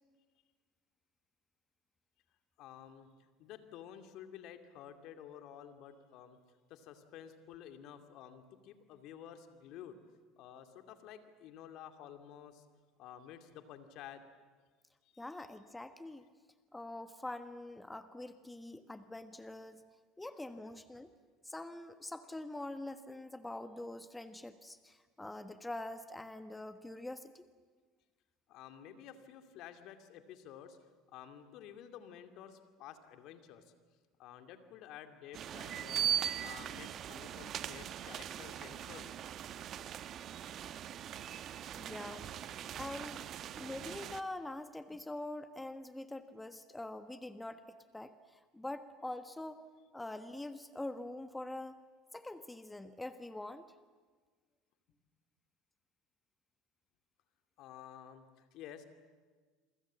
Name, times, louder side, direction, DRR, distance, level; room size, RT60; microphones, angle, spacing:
voice 1, 2.6-6.4 6.7-10.0 10.4-12.7 13.0-14.2 15.0-15.3 28.5-30.8 31.1-33.7 34.2-36.1 36.4-39.2 57.6-59.0, left 9 dB, 60° left, 7 dB, 2.5 m, -52 dB
voice 2, 15.2-16.2 16.7-19.9 20.2-21.1 21.4-27.5 41.7-43.3 43.6-49.6 49.9-51.8 52.1-53.6, left 2 dB, 10° left, 11 dB, 1.3 m, -44 dB
sound 1, 35.3-44.2, right 10 dB, 45° right, 1.1 m, -40 dB
27.5 x 24.5 x 7.5 m, 1.5 s
hypercardioid pair, 75°, 0 cm